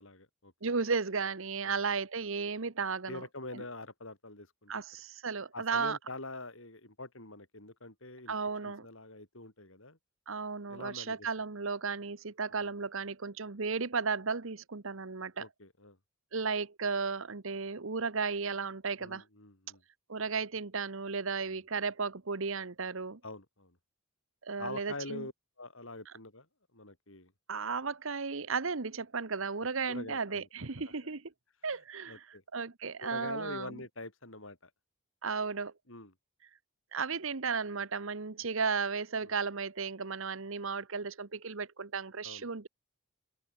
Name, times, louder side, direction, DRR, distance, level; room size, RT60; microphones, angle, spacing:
voice 1, 0.0-0.7 1.7-1.8 3.1-4.8 5.5-8.3 8.6-10.0 10.7-11.3 12.5-12.7 15.4-16.0 19.0-19.8 23.2-23.8 24.6-25.3 25.6-26.5 26.7-27.3 29.9-30.5 32.1-32.4 33.0-34.7 35.9-36.1 39.2-39.3 42.2-42.5, left 2 dB, 65° left, 5.4 m, -45 dB
voice 2, 0.6-3.2 3.5-3.6 4.7-6.0 8.3-8.9 10.3-15.5 16.3-19.2 20.1-23.2 24.4-25.3 27.5-31.3 31.6-32.3 32.5-33.8 35.2-35.7 36.9-42.7, right 5 dB, 65° right, 1.1 m, -34 dB
open air
head